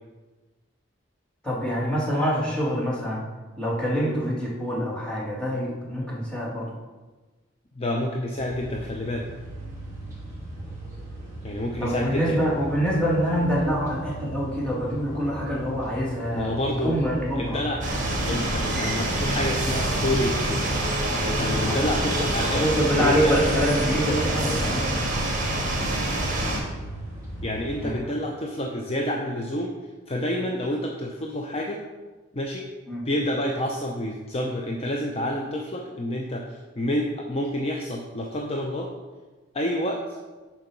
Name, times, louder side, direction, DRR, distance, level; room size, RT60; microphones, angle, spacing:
voice 1, 1.4-3.2 3.6-6.7 11.8-16.5 16.8-17.6 21.7-21.8 22.5-25.1 27.8-27.9 32.9-33.0, equal, 5° left, -6 dB, 1.9 m, -25 dB
voice 2, 7.8-9.3 11.4-12.5 16.3-17.0 17.4-17.9 18.2-20.6 21.2-23.4 26.4-26.7 27.4-29.7 30.1-31.9 32.3-32.7 33.0-38.9 39.5-40.0, left 1 dB, 30° left, 0 dB, 0.6 m, -28 dB
sound 1, 8.4-28.0, right 2 dB, 15° right, 2.2 m, -38 dB
sound 2, 17.8-26.6, right 1 dB, 40° right, 1.7 m, -26 dB
6.6 x 4.8 x 6.0 m, 1.3 s
head